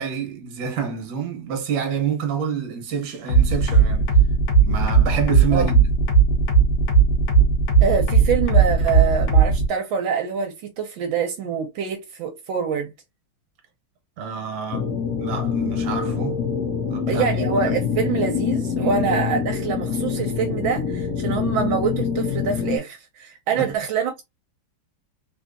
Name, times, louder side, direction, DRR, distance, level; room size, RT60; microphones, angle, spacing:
voice 1, 0.0-4.1 4.6-5.9 14.2-14.9 15.2-16.4 16.9-17.4 18.8-19.0 23.5-23.7, right 7 dB, 60° right, 1.5 m, -28 dB
sound 1, 3.3-9.6, right 5 dB, 55° left, 1.3 m, -16 dB
voice 2, 7.8-12.9 17.1-24.2, right 6 dB, 80° right, 1.4 m, -25 dB
sound 2, 14.7-22.8, left 6 dB, 75° left, 0.9 m, -25 dB
3.6 x 2.7 x 2.5 m
omnidirectional pair, 2.1 m